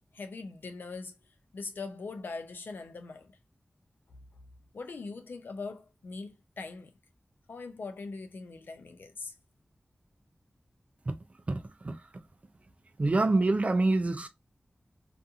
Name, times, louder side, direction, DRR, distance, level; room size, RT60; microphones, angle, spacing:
voice 1, 0.1-1.2 1.5-3.4 4.7-6.9 7.5-9.3, left 3 dB, 90° left, 0.5 m, -41 dB
voice 2, 11.5-12.0 13.0-14.3, right 2 dB, 45° right, 0.5 m, -26 dB
2.8 x 2.5 x 2.4 m
wide cardioid pair, 75°, 3 cm